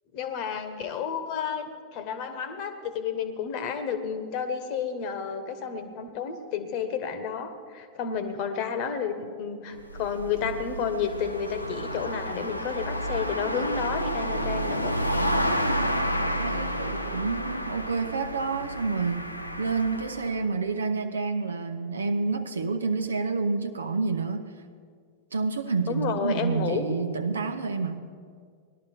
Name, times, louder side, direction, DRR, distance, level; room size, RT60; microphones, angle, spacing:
voice 1, 0.1-14.9 25.9-26.9, left 6 dB, 45° left, 10 dB, 1.3 m, -31 dB
sound 1, 9.7-20.4, equal, 90° left, 0.7 m, -30 dB
voice 2, 16.2-19.3 19.6-24.4 25.3-28.1, right 4 dB, 75° right, 8 dB, 0.8 m, -29 dB
19.0 x 12.0 x 4.5 m, 2.1 s
figure-of-eight pair, 90°, 0 cm